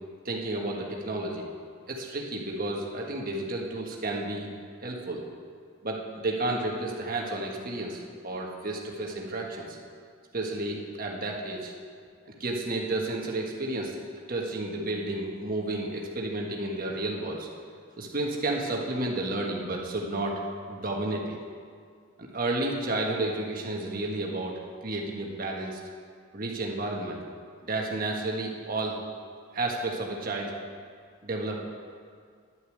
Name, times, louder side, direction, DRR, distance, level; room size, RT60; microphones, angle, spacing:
voice 1, 0.2-1.5 1.9-4.5 4.8-5.2 5.8-9.8 10.3-11.7 12.3-14.0 14.3-17.5 18.0-20.4 20.7-21.4 22.2-24.5 24.8-25.8 26.3-27.2 27.6-29.0 29.5-30.5 31.2-31.6, right 2 dB, 45° right, -1 dB, 1.5 m, -31 dB
11.0 x 6.7 x 7.9 m, 2.1 s
head